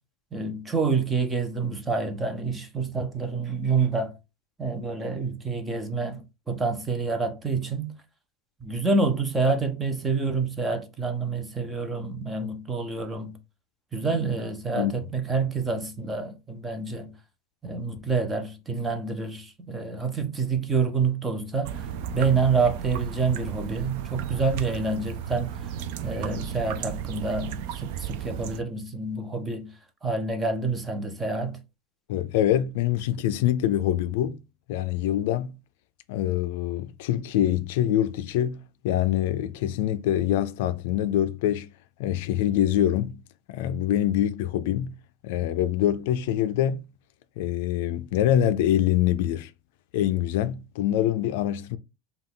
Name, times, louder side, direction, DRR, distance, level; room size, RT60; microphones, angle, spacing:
voice 1, 0.3-4.1 4.6-7.9 8.6-13.4 13.9-17.1 17.6-21.9 22.1-25.5 26.0-29.7 30.0-31.6, right 4 dB, 10° right, 0.6 m, -27 dB
sound 1, 21.6-28.6, right 9 dB, 60° right, 0.4 m, -34 dB
voice 2, 32.1-34.4 34.7-35.5 36.1-38.6 38.8-41.7 42.0-43.2 43.5-44.9 45.2-46.8 47.4-49.5 49.9-51.8, left 11 dB, 70° left, 0.4 m, -25 dB
5.4 x 2.3 x 3.7 m
supercardioid pair, 160°, 0 cm